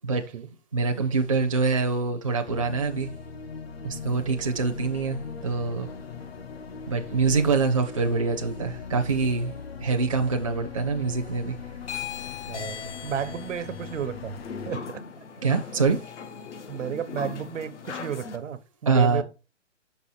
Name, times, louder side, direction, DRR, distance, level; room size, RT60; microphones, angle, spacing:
voice 1, 0.1-0.5 12.5-15.0 16.7-19.2, right 8 dB, 85° right, 0.9 m, -33 dB
voice 2, 0.7-3.1 3.8-5.9 6.9-9.5 9.8-11.7 15.4-16.1 18.9-19.2, right 4 dB, 30° right, 0.5 m, -25 dB
sound 1, 2.5-14.7, left 5 dB, 55° left, 0.7 m, -40 dB
sound 2, 11.8-18.4, left 7 dB, 70° left, 1.1 m, -39 dB
5.5 x 5.4 x 4.2 m
hypercardioid pair, 180°, 36 cm